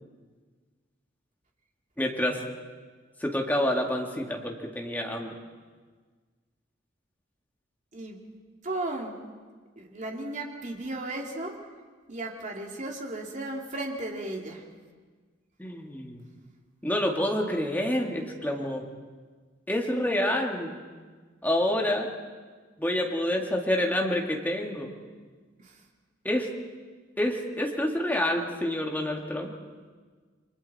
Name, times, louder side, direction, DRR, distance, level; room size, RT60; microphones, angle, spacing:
voice 1, 2.0-2.4 3.2-5.3 15.6-16.2 16.8-18.9 19.7-20.7 21.4-22.1 22.8-24.9 26.2-26.5 27.2-29.5, left 1 dB, 10° left, 0 dB, 2.2 m, -28 dB
voice 2, 8.6-9.2 9.8-11.6 12.1-14.6 25.6-25.8, right 2 dB, 40° right, 0 dB, 2.8 m, -35 dB
29.5 x 23.0 x 4.3 m, 1.5 s
head